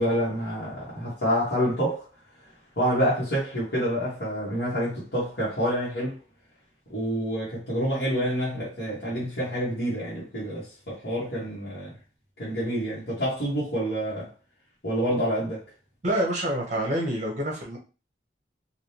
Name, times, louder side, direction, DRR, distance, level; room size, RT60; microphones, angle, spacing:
voice 1, 0.0-2.1 2.8-6.2 6.9-11.9 12.4-14.3 14.8-15.6, equal, 65° left, 1.4 m, -27 dB
voice 2, 16.0-17.8, right 1 dB, 40° right, 0.8 m, -27 dB
3.3 x 2.7 x 2.8 m
head